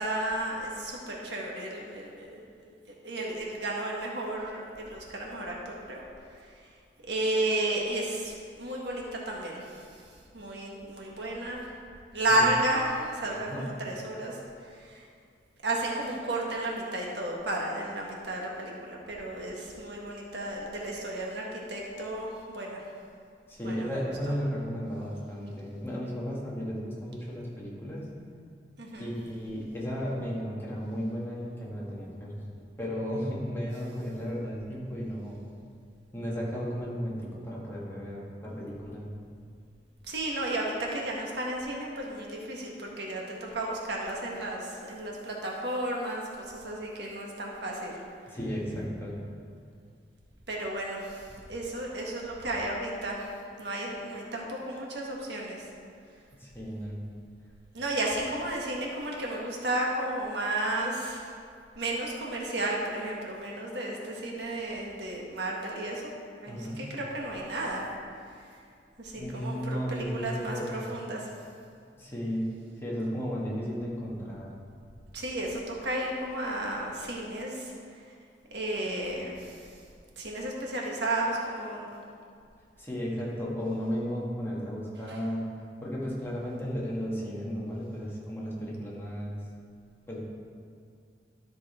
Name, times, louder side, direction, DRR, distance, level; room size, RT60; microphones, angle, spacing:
voice 1, 0.0-2.7 3.0-6.0 7.1-9.6 10.3-11.6 12.1-14.4 14.7-15.0 15.6-22.8 23.6-23.9 28.8-29.1 40.1-47.9 50.5-53.3 53.6-55.6 57.7-61.3 61.8-66.1 66.4-67.8 69.0-71.2 75.1-77.7 78.5-79.6 80.2-81.9 85.1-85.2, right 1 dB, 65° right, -2 dB, 1.6 m, -33 dB
voice 2, 23.5-28.1 29.0-32.4 32.8-35.5 36.1-39.1 48.3-49.2 56.4-57.0 66.5-66.9 69.1-70.9 72.0-72.5 72.8-74.5 82.8-85.5 85.8-89.4 90.1-90.2, equal, 15° left, -5 dB, 1.8 m, -34 dB
13.0 x 5.8 x 4.3 m, 2.3 s
head